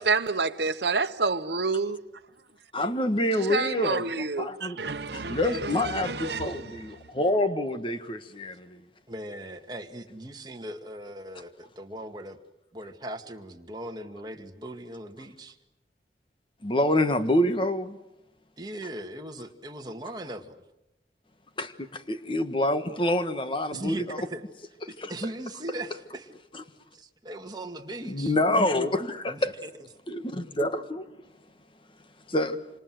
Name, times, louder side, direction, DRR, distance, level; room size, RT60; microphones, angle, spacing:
voice 1, 0.0-2.0 3.5-6.6, right 4 dB, 70° right, 1.1 m, -28 dB
voice 2, 2.7-4.8 5.1-8.8 16.6-18.0 21.6-24.2 25.0-25.1 28.0-29.5 30.1-31.0 32.3-32.6, left 1 dB, 30° left, 1.5 m, -27 dB
voice 3, 9.1-12.4 12.7-15.6 18.6-20.6 23.7-24.4 24.9-26.3 26.9-28.3 29.3-29.7, right 1 dB, 25° right, 2.1 m, -39 dB
28.0 x 26.5 x 7.8 m
head